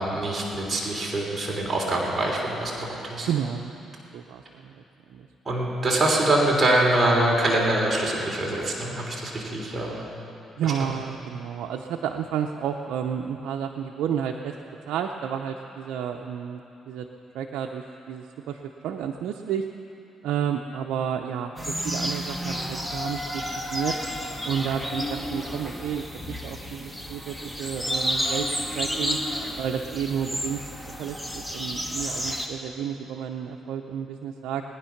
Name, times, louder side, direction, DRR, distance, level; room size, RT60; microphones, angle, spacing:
voice 1, 0.0-3.3 5.4-10.1 10.6-10.7, right 1 dB, 25° right, -3 dB, 3.3 m, -24 dB
voice 2, 3.2-3.8 4.1-4.8 5.1-5.3 10.6-14.5 14.9-17.1 17.3-19.6 20.2-23.4 23.7-24.0 24.4-28.5 28.7-29.2 29.6-30.6 31.0-34.6, right 8 dB, 85° right, 2 dB, 0.6 m, -31 dB
sound 1, 21.6-32.5, equal, ahead, 1.6 m, -31 dB
21.0 x 10.0 x 5.9 m, 2.9 s
cardioid pair, 90°, 0 cm